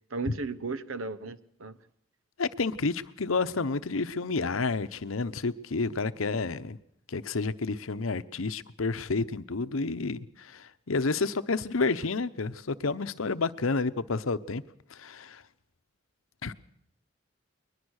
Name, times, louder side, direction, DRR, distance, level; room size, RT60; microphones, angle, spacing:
voice 1, 0.1-1.8, right 3 dB, 90° right, 1.0 m, -35 dB
voice 2, 2.4-6.8 7.1-14.6 14.9-15.4 16.4-16.5, left 3 dB, 90° left, 0.9 m, -30 dB
22.0 x 20.0 x 6.5 m
head